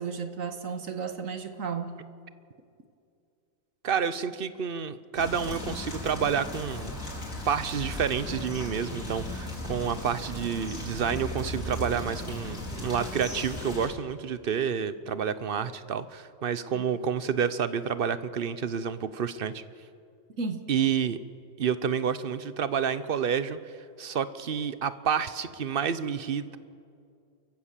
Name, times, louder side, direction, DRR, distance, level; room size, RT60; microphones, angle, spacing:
voice 1, 0.0-2.0 16.7-16.8 20.4-20.7, right 5 dB, 80° right, 7 dB, 1.8 m, -34 dB
voice 2, 3.8-7.0 7.4-19.6 20.7-21.2 21.6-26.6, right 7 dB, 50° right, 14 dB, 0.9 m, -29 dB
sound 1, 5.1-13.9, left 1 dB, 75° left, 4.8 m, -37 dB
29.0 x 15.0 x 7.5 m, 2.4 s
omnidirectional pair, 1.4 m